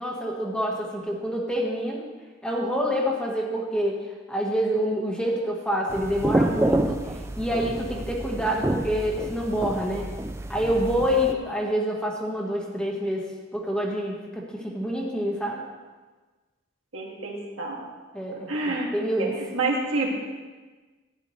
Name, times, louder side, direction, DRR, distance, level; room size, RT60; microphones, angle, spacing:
voice 1, 0.0-2.0 2.4-4.0 4.3-10.0 10.5-13.3 13.5-15.6 18.1-19.3, equal, 5° left, -2 dB, 1.4 m, -27 dB
sound 1, 5.9-11.3, right 1 dB, 15° right, 0.4 m, -28 dB
voice 2, 16.9-17.9 18.5-18.9 19.2-19.3 19.5-20.1, right 3 dB, 85° right, -2 dB, 2.2 m, -28 dB
14.0 x 10.0 x 3.2 m, 1.3 s
head